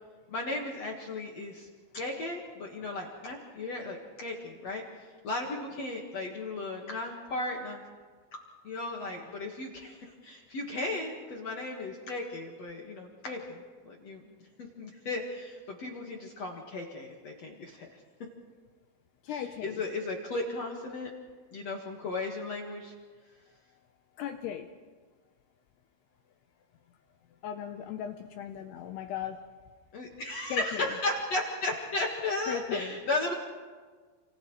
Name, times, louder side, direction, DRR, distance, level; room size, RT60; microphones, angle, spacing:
voice 1, 0.3-1.7 1.9-4.8 5.2-7.8 8.6-13.6 13.8-14.2 14.6-17.9 19.3-21.1 21.5-22.9 29.9-33.3, left 2 dB, 55° left, 0 dB, 1.9 m, -35 dB
voice 2, 19.2-19.8 24.2-24.7 27.4-29.5 30.5-30.9 32.5-33.0, left 9 dB, 80° left, 6 dB, 2.5 m, -37 dB
29.0 x 28.5 x 3.2 m, 1.5 s
omnidirectional pair, 5.4 m